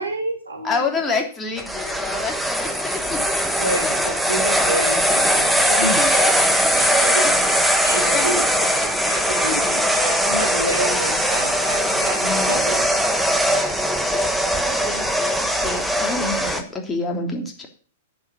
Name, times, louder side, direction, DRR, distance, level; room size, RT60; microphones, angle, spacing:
voice 1, 0.0-0.8 3.6-6.0 6.7-7.5 7.8-8.4 9.0-12.8 13.6-13.8, right 1 dB, 90° right, 1 dB, 4.9 m, -29 dB
voice 2, 0.6-3.4 6.0-7.3 7.7-8.4 8.7-9.1 14.1-17.7, left 3 dB, 15° left, 1 dB, 3.3 m, -29 dB
sound 1, 1.6-16.6, equal, ahead, 1.6 m, -20 dB
10.0 x 7.8 x 7.3 m, 0.41 s
figure-of-eight pair, 105°, 0 cm